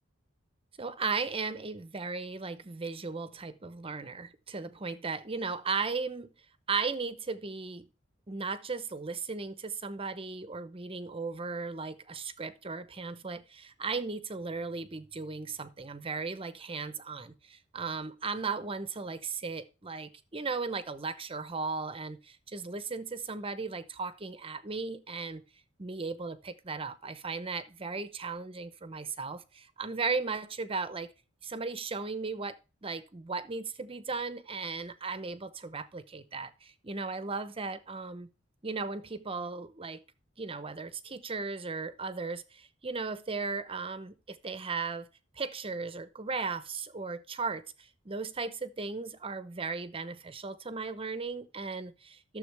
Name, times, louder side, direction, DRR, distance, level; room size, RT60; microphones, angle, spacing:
voice 1, 0.8-6.3 6.7-7.9 8.3-25.4 25.8-31.1 31.4-38.3 38.6-40.0 40.4-45.1 45.4-52.4, right 4 dB, 30° right, 0.8 m, -36 dB
12.5 x 7.2 x 3.4 m
head